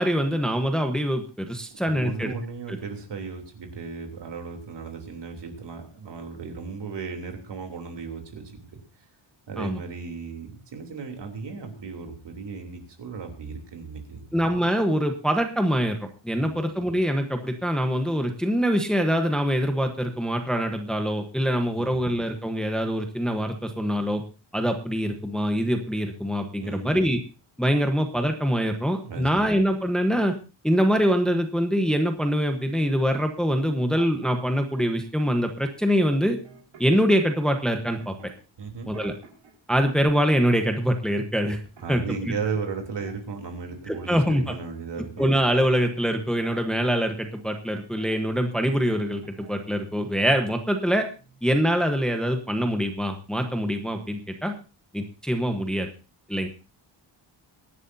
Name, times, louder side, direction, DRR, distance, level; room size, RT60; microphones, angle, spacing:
voice 1, 0.0-2.3 2.7-2.8 9.6-9.8 14.3-24.2 24.5-27.2 27.6-30.3 30.6-36.4 36.8-38.1 38.9-39.1 39.7-41.6 41.9-42.3 43.9-44.6 45.2-51.1 51.4-54.5 54.9-55.9 56.3-56.5, equal, ahead, 5 dB, 1.1 m, -24 dB
voice 2, 1.8-8.8 9.5-14.4 16.4-16.6 21.7-22.0 26.6-27.0 29.0-29.3 38.6-38.9 41.8-45.3, right 5 dB, 60° right, 4 dB, 3.4 m, -35 dB
sound 1, 33.8-34.9 35.5-35.8 36.1-37.4 38.0-39.5 39.9-40.9 41.1-43.4 43.6-48.5 48.9-49.6 49.9-50.9 51.1-51.4, right 5 dB, 80° right, 5.0 m, -51 dB
24.0 x 11.0 x 2.7 m, 0.32 s
wide cardioid pair, 155°, 46 cm